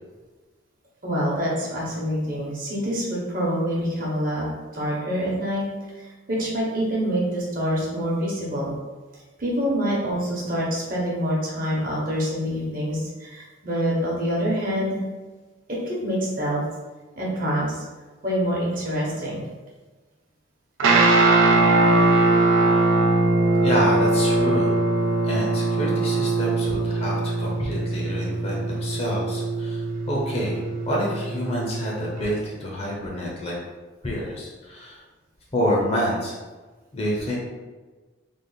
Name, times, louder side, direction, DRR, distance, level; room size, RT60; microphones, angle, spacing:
voice 1, 1.0-5.7 6.0-8.7 9.4-15.0 15.7-16.6 17.2-17.8 18.2-19.4, equal, 45° right, -5 dB, 1.0 m, -26 dB
Guitar, 20.8-32.2, right 2 dB, 80° right, 0.5 m, -21 dB
voice 2, 23.6-24.8 25.2-33.6 34.0-35.0 35.5-36.4 36.9-37.4, equal, 30° left, -3 dB, 0.7 m, -28 dB
3.3 x 2.4 x 3.9 m, 1.3 s
head